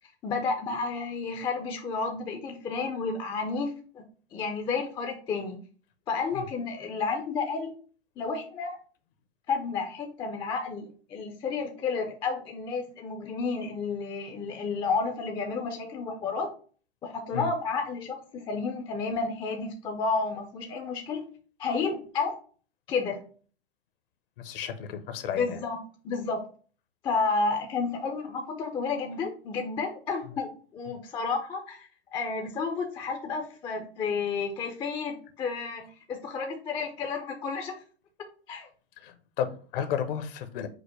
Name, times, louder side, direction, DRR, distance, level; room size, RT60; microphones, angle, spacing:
voice 1, 0.2-4.0 4.3-5.6 6.1-7.7 8.2-8.8 9.5-16.5 17.0-21.3 21.6-22.3 22.9-23.2 25.4-25.8 26.0-26.4 27.0-37.7 38.5-38.7, left 4 dB, 15° left, 0.4 m, -31 dB
voice 2, 24.4-25.6 30.2-30.4 30.9-31.0 39.0-40.7, left 8 dB, 60° left, 0.8 m, -33 dB
5.1 x 2.1 x 4.6 m
hypercardioid pair, 130°, 32 cm